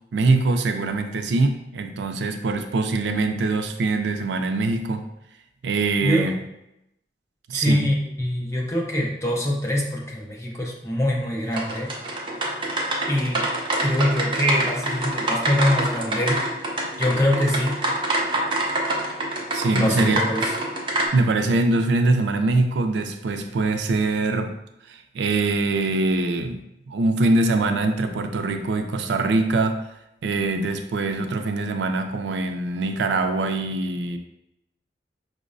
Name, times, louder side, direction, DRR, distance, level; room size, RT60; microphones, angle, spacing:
voice 1, 0.1-5.0 5.6-6.4 7.5-7.9 19.5-20.2 21.1-24.5 24.9-26.6 26.9-29.8 30.2-34.2, right 3 dB, 85° right, 7 dB, 0.4 m, -23 dB
voice 2, 7.5-11.9 13.1-13.5 13.8-16.4 17.0-17.7 19.7-20.5, left 1 dB, 15° left, -2 dB, 0.6 m, -23 dB
sound 1, 11.5-21.1, right 1 dB, 30° right, 0.5 m, -26 dB
5.1 x 2.1 x 2.5 m, 0.84 s
head